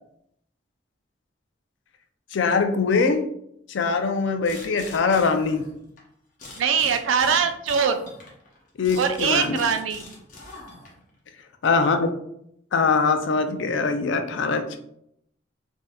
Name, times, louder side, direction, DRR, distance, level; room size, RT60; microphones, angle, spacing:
voice 1, 2.3-3.3 3.7-5.7 8.8-9.6 11.6-12.1 12.7-14.8, left 4 dB, 70° left, 7 dB, 0.4 m, -22 dB
sound 1, 4.4-6.0 6.4-11.1, left 2 dB, 40° left, 0.8 m, -42 dB
voice 2, 6.6-8.0 9.0-10.1, right 6 dB, 80° right, 8 dB, 0.4 m, -22 dB
3.4 x 2.6 x 2.2 m, 0.73 s
head